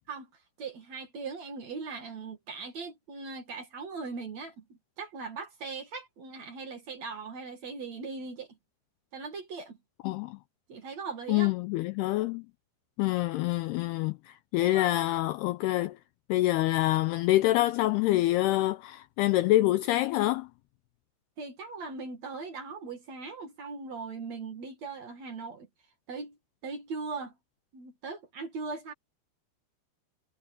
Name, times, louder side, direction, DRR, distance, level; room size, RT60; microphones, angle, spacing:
voice 1, 0.6-4.6 5.0-8.6 9.1-9.8 10.7-11.5 14.6-14.9 21.4-25.7 26.1-26.4 26.6-27.4 27.7-28.9, right 4 dB, 45° right, 2.7 m, -39 dB
voice 2, 10.0-10.4 11.3-12.4 13.0-16.0 16.3-20.5, left 16 dB, 90° left, 2.3 m, -26 dB
omnidirectional pair, 5.2 m